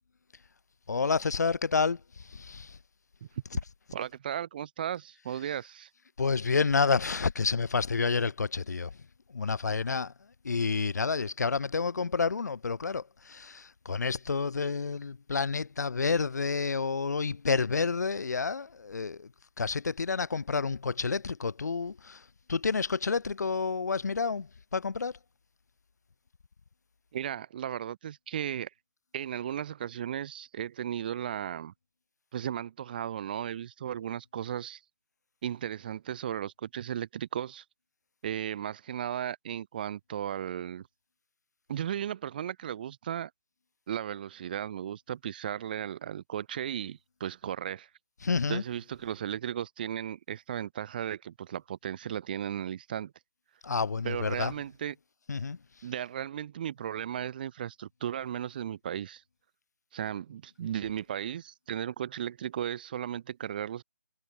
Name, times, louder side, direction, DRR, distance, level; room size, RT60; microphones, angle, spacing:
voice 1, 0.9-2.8 6.2-8.9 9.3-10.1 10.4-19.3 19.6-25.1 48.2-48.6 53.6-54.5 55.3-55.6, left 4 dB, 75° left, 0.6 m, -29 dB
voice 2, 3.9-5.9 27.1-28.7 29.1-31.7 32.3-34.8 35.4-37.6 38.2-40.9 41.7-43.3 43.9-47.9 48.5-53.1 54.0-55.0 55.8-59.2 59.9-63.8, right 10 dB, 30° right, 0.7 m, -35 dB
figure-of-eight pair, 155°, 9 cm